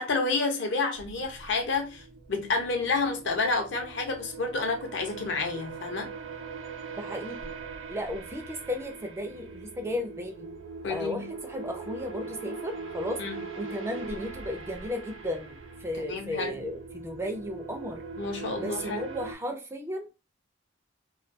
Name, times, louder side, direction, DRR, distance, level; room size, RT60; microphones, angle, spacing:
voice 1, 0.0-2.0 2.3-6.1 10.8-11.2 13.2-13.4 15.9-16.6 18.2-19.0, left 3 dB, 65° left, 0.6 m, -29 dB
sound 1, 1.0-19.4, right 4 dB, 85° right, 0.4 m, -41 dB
voice 2, 7.0-7.5 7.9-10.5 10.9-13.2 13.6-18.0 18.6-20.1, left 1 dB, 15° right, 0.3 m, -35 dB
2.3 x 2.2 x 2.5 m
head